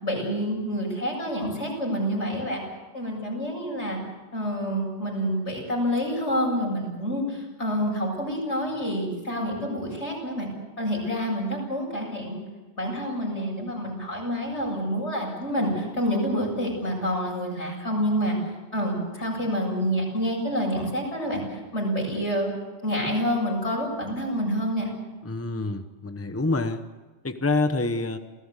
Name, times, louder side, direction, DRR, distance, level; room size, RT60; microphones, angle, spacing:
voice 1, 0.0-2.6 2.9-4.0 4.3-10.5 10.8-12.4 12.8-18.4 18.7-22.5 22.8-24.9, equal, 85° left, -1 dB, 7.9 m, -28 dB
voice 2, 25.2-26.8 27.2-28.2, left 3 dB, 15° left, 8 dB, 1.0 m, -27 dB
28.0 x 17.0 x 8.3 m, 1.2 s
omnidirectional pair, 1.2 m